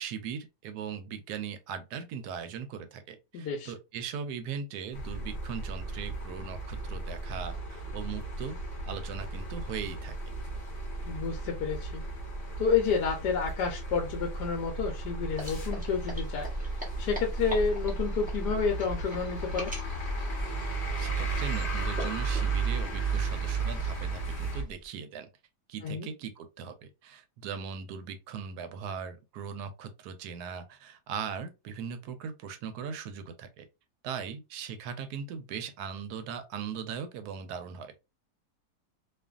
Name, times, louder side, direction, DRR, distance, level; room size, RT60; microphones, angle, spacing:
voice 1, 0.0-8.6 8.9-10.1 20.7-25.3 25.7-33.6 34.0-37.9, right 7 dB, 75° right, 1.1 m, -39 dB
voice 2, 3.3-3.7 11.1-12.0 12.6-16.5 17.0-19.7 25.8-26.1, left 5 dB, 80° left, 1.2 m, -30 dB
sound 1, 4.9-24.6, right 3 dB, 45° left, 0.8 m, -34 dB
sound 2, 15.3-24.8, left 1 dB, 10° right, 0.4 m, -42 dB
2.6 x 2.5 x 2.3 m
omnidirectional pair, 1.8 m